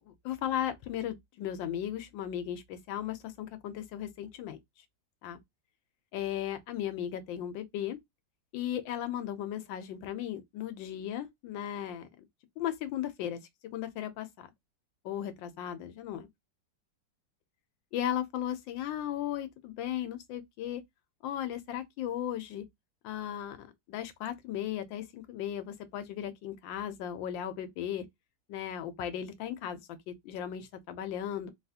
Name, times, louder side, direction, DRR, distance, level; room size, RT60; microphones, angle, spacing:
voice 1, 0.1-4.6 5.2-5.4 6.1-8.0 8.5-12.1 12.6-13.4 13.7-14.5 15.0-16.3 17.9-20.8 21.2-22.6 23.0-28.0 28.5-29.8 30.1-31.5, left 11 dB, 90° left, 1.4 m, -36 dB
3.6 x 2.4 x 2.7 m
omnidirectional pair, 2.0 m